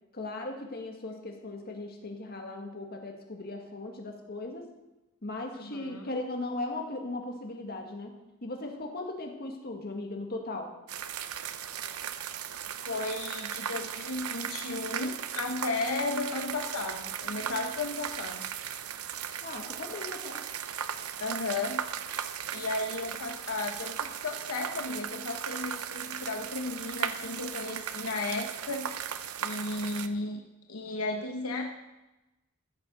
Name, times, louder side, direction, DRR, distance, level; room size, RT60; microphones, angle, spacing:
voice 1, 0.1-4.7 5.2-10.7 19.4-20.5, left 2 dB, 45° left, 2 dB, 2.0 m, -38 dB
voice 2, 5.5-6.2 12.8-18.4 21.2-21.8 22.5-28.9 29.4-30.4 30.7-31.7, left 2 dB, 75° left, 3 dB, 1.0 m, -34 dB
sound 1, 10.9-30.1, right 8 dB, 80° right, 0.7 m, -37 dB
14.0 x 7.2 x 6.4 m, 1.0 s
head